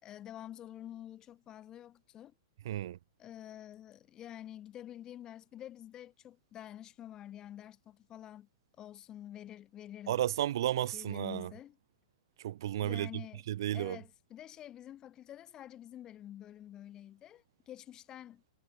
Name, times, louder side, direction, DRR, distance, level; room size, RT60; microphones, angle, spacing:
voice 1, 0.0-2.3 3.2-8.5 8.8-10.2 10.9-11.8 12.8-13.4 13.7-18.4, left 11 dB, 30° left, 2.1 m, -48 dB
voice 2, 2.6-3.0 10.1-11.5 12.4-13.2 13.5-14.0, right 12 dB, 65° right, 1.0 m, -33 dB
hypercardioid pair, 115°, 2 cm